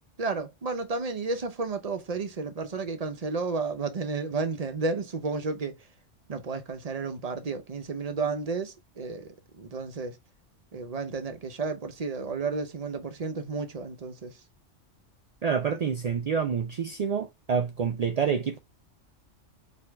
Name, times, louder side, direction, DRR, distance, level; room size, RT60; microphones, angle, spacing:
voice 1, 0.2-5.8 6.3-10.2 10.7-14.4, right 4 dB, 40° right, 0.7 m, -32 dB
voice 2, 15.4-18.6, right 6 dB, 85° right, 0.3 m, -27 dB
4.8 x 2.8 x 3.4 m
omnidirectional pair, 1.2 m